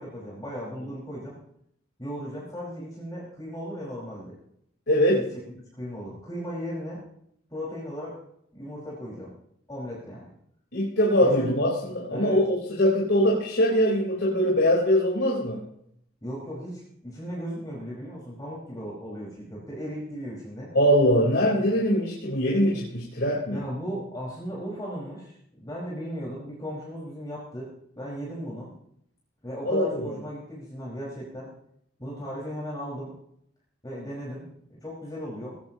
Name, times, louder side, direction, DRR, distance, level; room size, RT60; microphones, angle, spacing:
voice 1, 0.0-1.3 2.0-4.3 5.8-7.0 7.5-8.2 8.5-9.3 9.7-10.3 11.2-11.4 12.1-12.4 16.2-20.7 23.5-27.7 28.0-28.7 29.4-31.5 32.0-33.1 33.8-35.6, equal, 20° left, -6 dB, 5.1 m, -36 dB
voice 2, 4.9-5.2 10.7-15.6 20.7-23.6 29.6-30.2, equal, 60° left, -4 dB, 4.1 m, -22 dB
19.5 x 17.0 x 3.0 m, 0.72 s
head